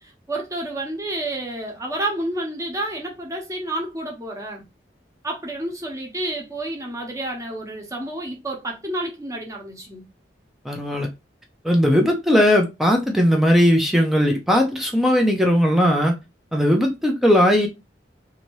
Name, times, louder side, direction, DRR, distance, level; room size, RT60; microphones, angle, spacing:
voice 1, 0.0-4.6 5.2-10.0, right 1 dB, 20° right, 1.0 m, -30 dB
voice 2, 10.6-11.1 11.6-16.1 16.5-17.7, equal, ahead, 0.5 m, -18 dB
2.8 x 2.7 x 3.0 m
head